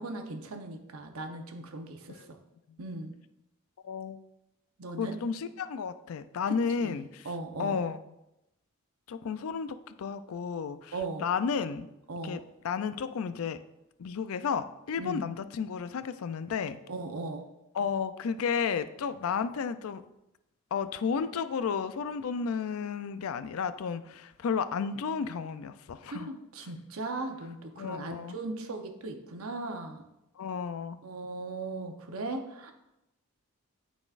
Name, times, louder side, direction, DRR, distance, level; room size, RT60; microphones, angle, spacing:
voice 1, 0.0-2.3 2.8-3.1 4.8-5.2 6.5-6.6 6.8-7.8 10.9-11.2 12.1-12.4 15.0-15.2 16.9-17.4 26.1-30.0 31.0-32.7, right 2 dB, 75° right, 5 dB, 0.8 m, -38 dB
voice 2, 3.8-4.2 5.0-7.3 7.6-8.0 9.1-11.9 12.2-12.4 12.6-13.6 14.0-16.8 17.7-20.0 20.7-26.3 27.8-28.4 30.4-31.0, left 6 dB, 70° left, 12 dB, 0.4 m, -32 dB
12.0 x 4.1 x 2.5 m, 0.89 s
head